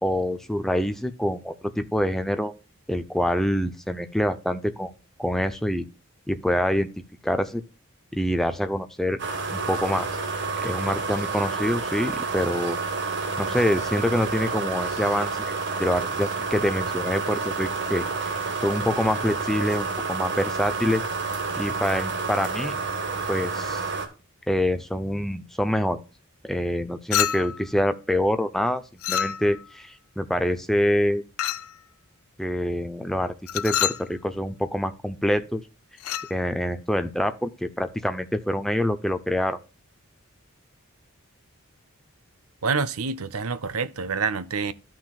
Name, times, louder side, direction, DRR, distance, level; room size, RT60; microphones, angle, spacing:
voice 1, 0.0-2.5 2.9-4.9 5.2-5.8 6.3-6.9 7.2-7.6 8.1-9.2 9.5-10.1 10.6-12.8 13.4-15.5 15.8-21.0 21.6-22.8 23.3-23.9 24.5-26.0 26.4-31.2 32.4-35.6 36.3-39.6, equal, ahead, 0.6 m, -26 dB
sound 1, 9.2-24.1, right 4 dB, 50° right, 1.3 m, -29 dB
Chink clink, 27.1-27.7 29.0-29.7 31.4-31.8 33.5-34.1 36.0-36.3, left 10 dB, 75° left, 0.4 m, -27 dB
voice 2, 42.6-44.7, right 5 dB, 85° right, 0.7 m, -27 dB
13.5 x 6.1 x 2.3 m
head